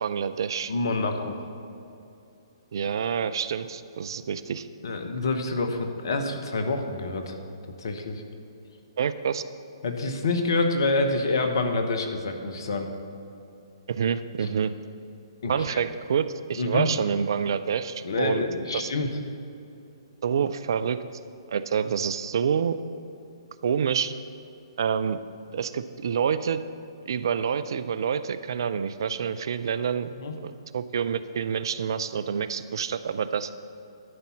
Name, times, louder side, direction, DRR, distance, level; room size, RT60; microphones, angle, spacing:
voice 1, 0.0-0.7 2.7-4.7 9.0-9.4 13.9-14.7 15.5-18.4 18.7-18.9 20.2-21.0 21.5-22.8 23.6-24.1 24.8-25.2 25.5-26.6 27.1-30.1 30.4-33.5, right 7 dB, 55° right, 13 dB, 0.4 m, -27 dB
voice 2, 0.7-1.4 4.8-7.4 7.8-8.2 9.8-12.9 15.4-15.8 16.6-16.9 18.0-19.1 30.2-30.3, left 3 dB, 60° left, 6 dB, 1.1 m, -27 dB
11.0 x 5.6 x 7.3 m, 2.7 s
figure-of-eight pair, 125°, 3 cm